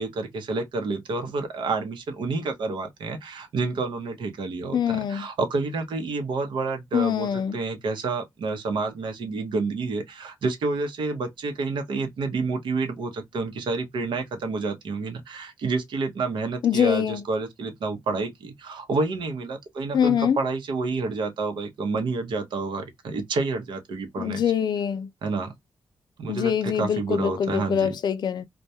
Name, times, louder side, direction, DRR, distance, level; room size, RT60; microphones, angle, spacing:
voice 1, 0.0-24.4 25.2-25.5 26.2-27.9, right 3 dB, 75° right, 0.7 m, -29 dB
voice 2, 4.7-5.3 6.9-7.6 16.6-17.2 19.9-20.4 24.2-25.1 26.3-28.5, left 8 dB, 60° left, 0.4 m, -24 dB
2.2 x 2.1 x 2.7 m
cardioid pair, 105°, 8 cm